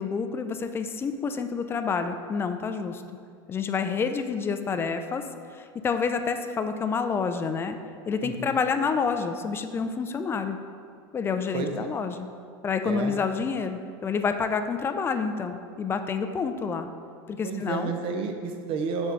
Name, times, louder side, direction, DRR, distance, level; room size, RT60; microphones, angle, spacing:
voice 1, 0.0-3.0 3.5-5.2 5.6-7.8 8.1-10.6 11.1-12.3 12.6-16.9 17.3-17.9, left 5 dB, 20° left, 8 dB, 0.4 m, -28 dB
voice 2, 8.2-8.6 11.5-11.9 12.8-13.2 17.4-19.1, right 4 dB, 45° right, 5 dB, 0.8 m, -31 dB
6.0 x 5.4 x 4.5 m, 2.2 s
supercardioid pair, 135°, 12 cm